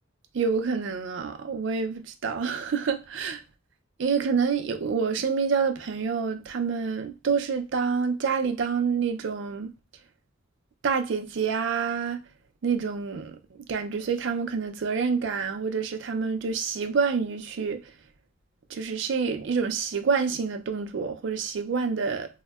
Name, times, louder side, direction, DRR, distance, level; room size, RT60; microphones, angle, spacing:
voice 1, 0.3-3.4 4.0-9.7 10.8-12.2 12.6-13.3 13.7-17.8 18.7-22.3, right 5 dB, 60° right, 0.4 m, -27 dB
3.4 x 2.1 x 2.2 m
head